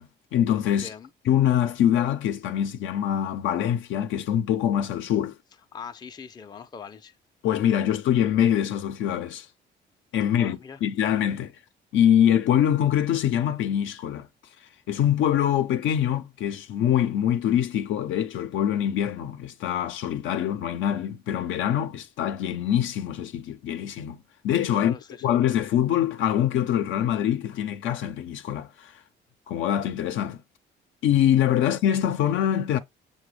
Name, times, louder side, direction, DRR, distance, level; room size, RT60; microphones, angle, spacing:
voice 1, 0.0-0.9 1.3-5.4 7.4-9.5 10.1-11.5 11.9-14.3 14.9-24.2 24.4-24.9 25.2-28.9 29.5-30.4 31.0-32.8, left 10 dB, 80° left, 0.5 m, -24 dB
voice 2, 5.7-7.2 10.4-10.8 24.7-25.3, left 6 dB, 20° left, 0.4 m, -41 dB
5.9 x 2.1 x 3.2 m
cardioid pair, 90°, 20 cm